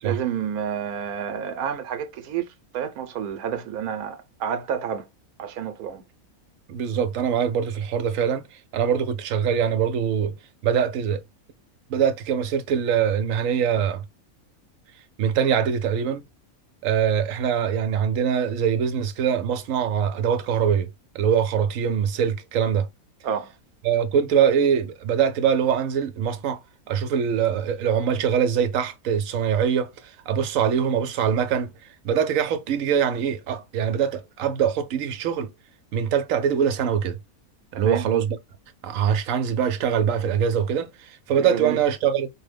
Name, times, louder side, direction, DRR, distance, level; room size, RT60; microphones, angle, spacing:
voice 1, 0.0-2.5 2.7-5.1 5.4-6.0 23.2-23.5 37.7-38.0 41.4-41.8, right 8 dB, 90° right, 1.1 m, -29 dB
voice 2, 6.7-8.4 8.7-10.3 10.6-11.2 11.9-14.0 15.2-16.2 16.8-20.9 21.1-22.9 23.8-26.6 26.9-31.7 32.0-35.5 35.9-37.2 37.7-38.4 38.8-42.3, right 8 dB, 70° right, 1.0 m, -23 dB
4.8 x 2.1 x 3.3 m
omnidirectional pair, 1.5 m